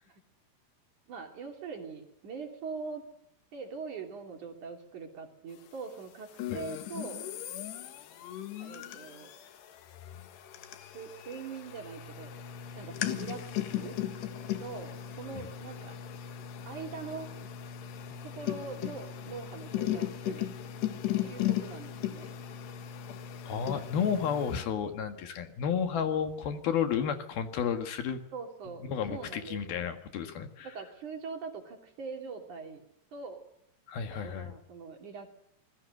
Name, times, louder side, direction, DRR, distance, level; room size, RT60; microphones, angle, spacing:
voice 1, 1.1-3.1 3.5-7.3 8.6-9.3 10.9-12.3 12.8-14.0 14.6-16.0 16.7-17.3 18.2-20.5 21.2-22.3 28.3-29.8 30.6-32.8 33.1-33.4 34.1-35.3, right 5 dB, 50° right, 4 dB, 4.1 m, -42 dB
sound 1, 6.4-24.6, left 11 dB, 90° left, 3.8 m, -37 dB
voice 2, 23.5-28.2 28.8-30.7 33.9-34.5, left 7 dB, 65° left, 7 dB, 3.5 m, -32 dB
26.5 x 21.0 x 6.7 m, 0.78 s
omnidirectional pair, 4.7 m